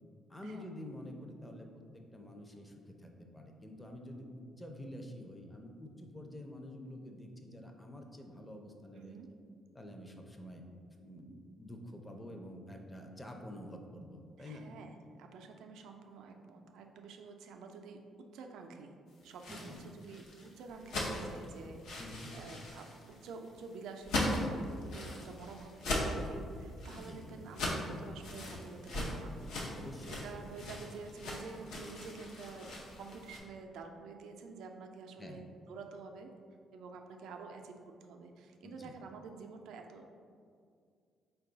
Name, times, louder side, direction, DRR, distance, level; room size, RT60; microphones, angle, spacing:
voice 1, 0.3-9.2 9.7-10.6 11.0-14.7 19.5-19.8 22.0-22.3 26.9-27.2 29.7-30.2 35.2-35.4 38.6-38.9, left 1 dB, 15° left, 2 dB, 0.5 m, -48 dB
voice 2, 8.9-9.3 14.4-18.9 19.2-29.8 30.1-36.3 36.7-40.1, right 4 dB, 85° right, 4 dB, 0.4 m, -49 dB
sound 1, 19.2-33.4, left 1 dB, 90° left, 0.7 m, -39 dB
sound 2, 26.5-26.8 27.2-27.5 27.9-28.1 28.5-28.6 28.9-29.0 29.2-29.4 29.9-30.1 30.5-30.7, left 2 dB, 65° left, 1.1 m, -55 dB
4.5 x 2.3 x 3.8 m, 2.2 s
cardioid pair, 90°, 0 cm